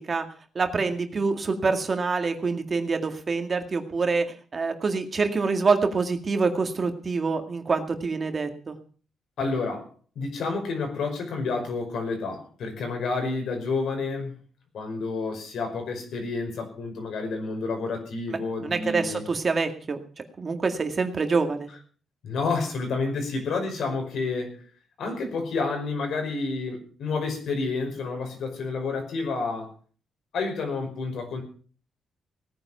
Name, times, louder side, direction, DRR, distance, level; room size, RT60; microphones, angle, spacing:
voice 1, 0.6-4.2 4.5-8.8 18.6-20.0 20.4-21.7, right 4 dB, 35° right, 6 dB, 2.0 m, -26 dB
voice 2, 9.4-14.4 14.7-19.2 22.2-24.6 25.0-29.7 30.3-31.4, left 4 dB, 70° left, 4 dB, 5.3 m, -29 dB
18.0 x 9.8 x 5.7 m, 0.42 s
cardioid pair, 115°, 0 cm